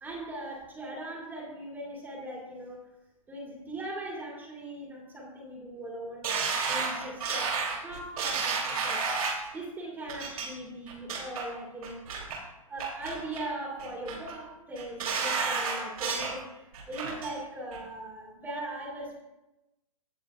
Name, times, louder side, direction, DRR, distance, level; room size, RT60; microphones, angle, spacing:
voice 1, 0.0-2.9 3.3-6.4 6.7-9.2 9.5-12.0 12.7-19.2, right 1 dB, 10° right, -3 dB, 2.5 m, -40 dB
sound 1, 6.2-9.5 10.1-10.5 10.9-11.4 11.8-12.4 12.8-13.5 13.8-14.3 14.8-16.4 16.7-17.3 17.7-17.8, right 5 dB, 75° right, 2.9 m, -31 dB
17.0 x 7.0 x 2.4 m, 0.98 s
hypercardioid pair, 145°, 19 cm